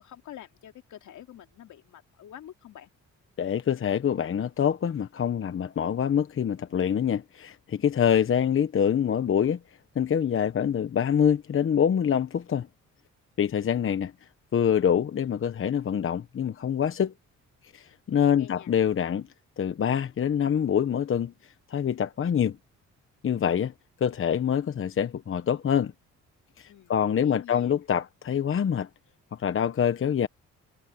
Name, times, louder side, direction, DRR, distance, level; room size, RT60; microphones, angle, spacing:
voice 1, 0.0-2.9 18.4-18.7 26.7-27.7, left 11 dB, 70° left, 2.9 m, -47 dB
voice 2, 3.4-9.6 9.9-12.7 13.4-14.1 14.5-17.1 17.7-19.3 19.6-21.3 21.7-22.6 23.2-23.7 24.0-25.9 26.6-28.9 29.3-30.3, left 8 dB, 45° left, 1.1 m, -25 dB
cardioid pair, 90°, 30 cm